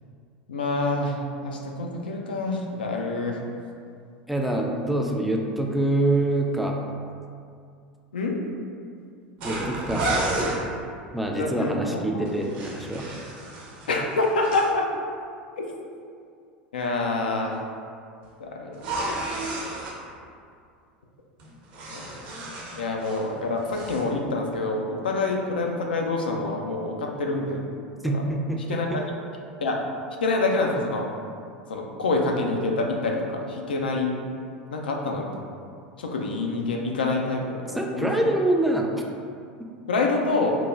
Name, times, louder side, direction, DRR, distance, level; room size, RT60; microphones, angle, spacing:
voice 1, 0.5-1.2 1.4-3.4 8.1-8.4 11.4-12.0 13.9-14.9 15.6-15.7 16.7-17.6 18.4-18.8 21.9-22.1 22.8-27.7 28.1-28.2 28.7-29.0 29.6-29.8 30.2-31.1 31.7-34.1 34.7-35.3 36.0-38.1 39.9-40.6, left 3 dB, 80° left, 1 dB, 0.3 m, -26 dB
voice 2, 4.3-6.8 9.4-10.4 11.1-13.1 28.0-29.0 37.7-39.0, right 1 dB, ahead, 0 dB, 0.3 m, -25 dB
sound 1, 9.4-10.6 12.3-14.7 18.7-20.0 21.4-23.3 23.6-24.0, right 2 dB, 60° right, 0.6 m, -31 dB
3.0 x 2.1 x 2.4 m, 2.3 s
hypercardioid pair, 80°, 5 cm